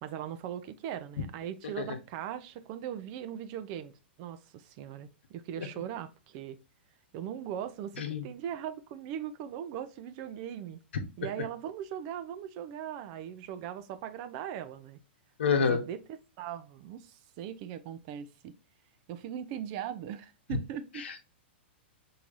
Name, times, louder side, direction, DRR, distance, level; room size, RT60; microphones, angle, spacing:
voice 1, 0.0-3.9 4.2-6.6 7.1-10.8 11.2-15.0 15.6-16.0 16.4-18.5 19.1-21.2, right 9 dB, 45° right, 0.5 m, -39 dB
voice 2, 15.4-15.8 21.0-21.2, left 6 dB, 85° left, 0.9 m, -28 dB
4.5 x 2.8 x 2.5 m
hypercardioid pair, 135°, 6 cm